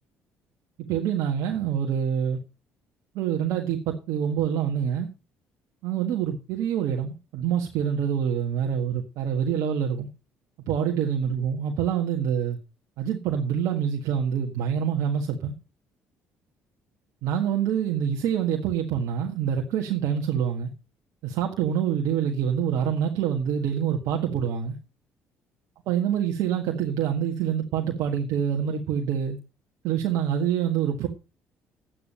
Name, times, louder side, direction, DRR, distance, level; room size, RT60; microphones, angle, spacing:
voice 1, 0.9-2.4 3.1-5.1 5.8-10.1 10.7-12.6 13.0-15.5 17.2-20.7 21.2-24.8 25.9-29.4 29.8-31.1, right 8 dB, 75° right, 1.7 m, -26 dB
11.0 x 9.1 x 5.5 m
supercardioid pair, 70°, 6 cm